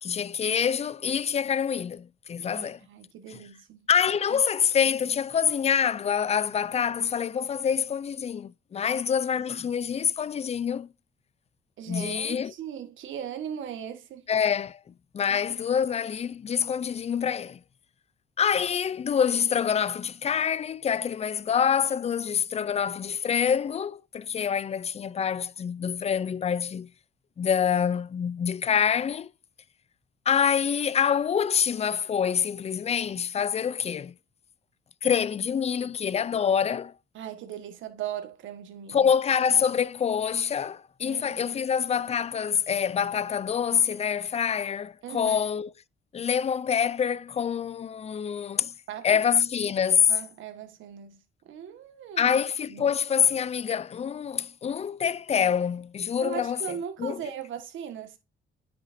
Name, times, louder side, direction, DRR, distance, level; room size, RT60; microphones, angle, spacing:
voice 1, 0.0-2.8 3.3-3.4 3.9-10.9 11.9-12.5 14.3-17.6 18.4-26.9 27.4-29.3 30.3-34.1 35.0-36.9 38.9-45.7 46.1-48.7 49.0-50.1 52.2-57.2, left 7 dB, 30° left, 0.4 m, -26 dB
voice 2, 2.5-3.9 4.3-4.4 11.8-14.2 15.3-15.4 22.5-22.7 37.1-39.1 41.0-41.6 45.0-45.4 48.9-49.1 50.1-51.2 51.4-52.4 52.7-52.9 56.2-58.2, right 9 dB, 80° right, 1.7 m, -38 dB
9.7 x 6.0 x 2.7 m
cardioid pair, 90°, 20 cm